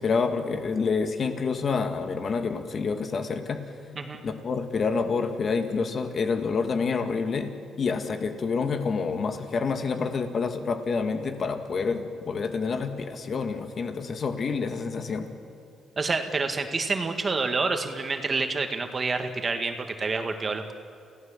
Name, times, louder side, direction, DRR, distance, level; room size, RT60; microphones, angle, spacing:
voice 1, 0.0-3.6 4.2-7.5 7.8-15.3, left 5 dB, 50° left, 6 dB, 2.2 m, -28 dB
voice 2, 16.0-20.7, right 4 dB, 35° right, 6 dB, 2.1 m, -28 dB
29.5 x 16.5 x 7.5 m, 2.3 s
cardioid pair, 90°, 0 cm